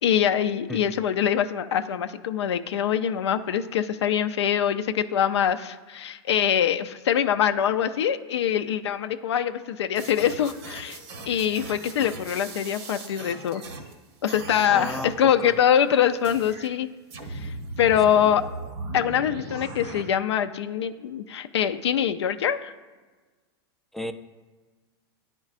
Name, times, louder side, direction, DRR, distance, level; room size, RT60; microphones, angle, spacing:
voice 1, 0.0-11.0 11.3-13.6 14.2-16.9 17.3-18.4 18.9-22.7, left 9 dB, 85° left, 8 dB, 0.4 m, -24 dB
sound 1, 10.0-13.9 14.2-15.1 16.2-16.7 17.1-20.0, right 2 dB, 80° right, 1.0 m, -38 dB
voice 2, 14.7-15.5 18.1-18.3 23.9-24.1, left 1 dB, ahead, 7 dB, 0.3 m, -34 dB
10.0 x 4.4 x 2.4 m, 1.3 s
hypercardioid pair, 115°, 14 cm